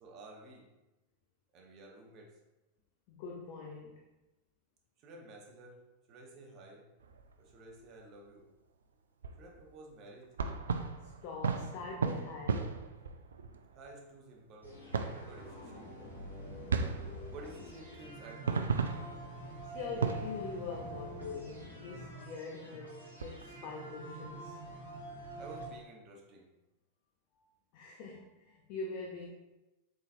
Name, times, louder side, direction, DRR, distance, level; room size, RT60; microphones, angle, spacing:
voice 1, 0.0-0.7 1.5-2.4 5.0-5.8 6.1-6.9 7.4-8.5 9.4-10.3 13.7-14.8 15.2-16.0 17.0-18.8 25.4-26.5, right 2 dB, 35° right, 0 dB, 0.8 m, -52 dB
voice 2, 3.1-4.0 11.0-12.7 19.6-24.6 27.7-29.3, left 4 dB, 45° left, -1 dB, 0.5 m, -43 dB
sound 1, 7.0-8.0 9.2-9.7 10.2-14.0 14.9-16.0 16.3-16.4 16.7-21.2 21.7-21.8 22.8-22.9 23.1-23.4, right 5 dB, 70° right, 0.3 m, -37 dB
sound 2, 14.6-25.7, right 1 dB, 85° right, 1.2 m, -47 dB
4.0 x 3.8 x 2.6 m, 1.0 s
figure-of-eight pair, 90°, 0 cm